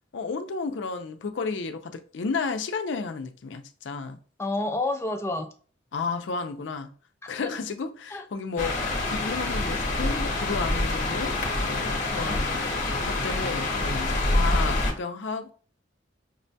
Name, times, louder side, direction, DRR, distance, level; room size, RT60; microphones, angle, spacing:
voice 1, 0.1-4.2 5.9-6.9 7.3-11.4 11.6-12.8 13.1-15.5, left 4 dB, 70° left, 0.5 m, -32 dB
voice 2, 4.4-5.5 7.4-7.5 8.1-8.3 12.1-12.4 14.5-14.9, left 2 dB, 15° left, 0.4 m, -30 dB
sound 1, 8.6-14.9, left 2 dB, 45° left, 0.8 m, -26 dB
5.2 x 2.2 x 2.6 m
head